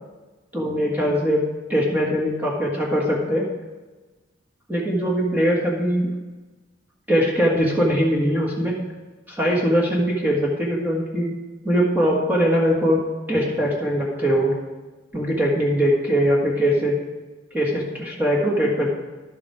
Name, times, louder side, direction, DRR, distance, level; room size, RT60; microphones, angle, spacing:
voice 1, 0.5-1.4 1.7-3.5 4.7-6.1 7.1-8.8 9.3-11.3 11.6-13.0 13.3-14.5 15.1-16.9 17.5-18.9, equal, 10° right, -4 dB, 1.7 m, -21 dB
11.5 x 7.5 x 4.8 m, 1.2 s
head